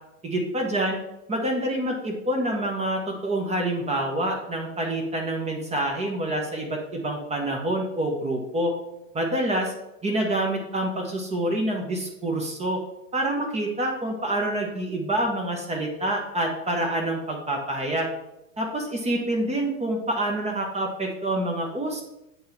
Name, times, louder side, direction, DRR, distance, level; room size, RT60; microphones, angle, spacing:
voice 1, 0.2-1.0 1.3-8.7 9.1-9.7 10.0-12.8 13.1-18.1 18.6-22.0, right 1 dB, 15° right, 1 dB, 1.2 m, -27 dB
7.9 x 3.8 x 4.6 m, 0.88 s
figure-of-eight pair, 90°, 39 cm